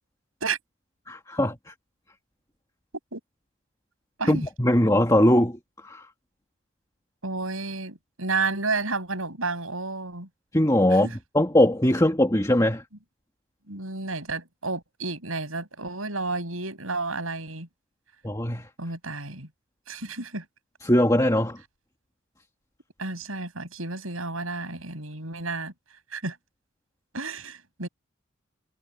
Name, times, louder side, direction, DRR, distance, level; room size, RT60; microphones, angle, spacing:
voice 1, 1.1-1.7 4.3-6.1 10.5-12.8 18.2-18.7 20.8-21.6, left 1 dB, 15° left, 2.0 m, -21 dB
voice 2, 7.2-10.3 11.0-11.1 13.7-17.7 18.8-19.5 19.9-20.4 23.0-25.7 26.1-26.4 27.1-27.9, right 3 dB, 80° right, 7.8 m, -31 dB
head